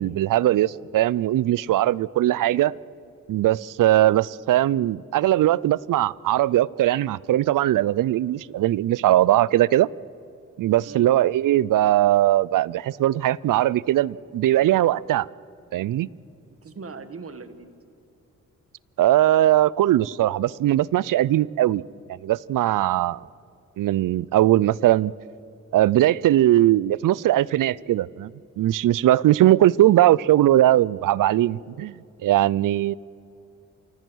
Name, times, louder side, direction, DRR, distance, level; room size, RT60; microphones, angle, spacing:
voice 1, 0.0-2.8 3.3-9.9 10.6-15.3 15.7-16.1 19.0-21.8 22.2-23.2 23.8-25.1 25.7-28.3 28.6-32.9, right 14 dB, 80° right, 0.5 m, -20 dB
voice 2, 16.6-17.7, right 4 dB, 45° right, 1.5 m, -40 dB
28.5 x 16.0 x 6.3 m
wide cardioid pair, 105°, 31 cm